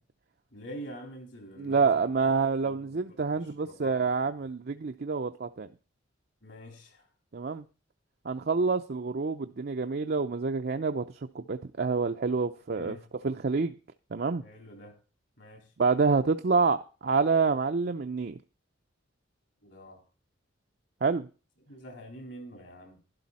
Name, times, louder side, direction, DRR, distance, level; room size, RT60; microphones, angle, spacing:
voice 1, 0.5-2.3 2.6-3.0 3.3-4.1 6.4-7.0 12.7-13.0 14.4-14.9 15.4-15.6 19.6-20.0 21.7-23.0, equal, 60° left, 4.0 m, -46 dB
voice 2, 1.6-5.7 7.3-7.6 8.2-11.1 11.3-13.0 13.2-13.7 14.1-14.4 15.8-18.4 21.0-21.3, right 4 dB, 50° right, 0.5 m, -27 dB
11.5 x 11.5 x 4.1 m
head